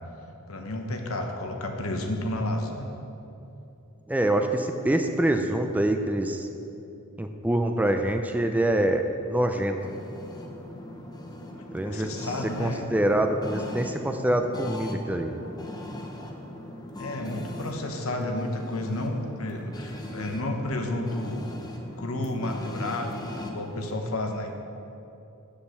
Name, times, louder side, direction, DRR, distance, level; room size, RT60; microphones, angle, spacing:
voice 1, 0.5-2.9 11.5-12.9 17.0-21.4 22.0-24.6, left 1 dB, 75° left, 4 dB, 1.0 m, -31 dB
voice 2, 4.1-6.5 7.2-9.8 11.7-12.3 12.6-15.3, right 1 dB, 5° right, 6 dB, 0.4 m, -25 dB
sound 1, 9.8-23.9, left 1 dB, 20° left, 0.8 m, -40 dB
7.5 x 6.8 x 7.0 m, 2.9 s
head